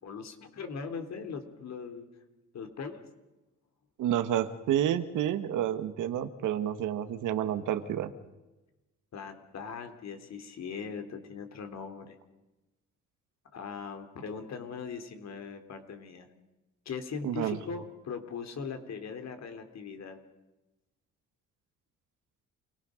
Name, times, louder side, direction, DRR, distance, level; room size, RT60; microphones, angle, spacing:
voice 1, 0.0-2.1 2.5-3.0 9.1-12.1 13.5-16.3 16.8-20.2, left 5 dB, 60° left, 7 dB, 3.3 m, -40 dB
voice 2, 4.0-8.1 17.2-17.6, right 11 dB, 85° right, 10 dB, 1.6 m, -29 dB
28.0 x 18.5 x 6.5 m, 1.1 s
cardioid pair, 90°, 30 cm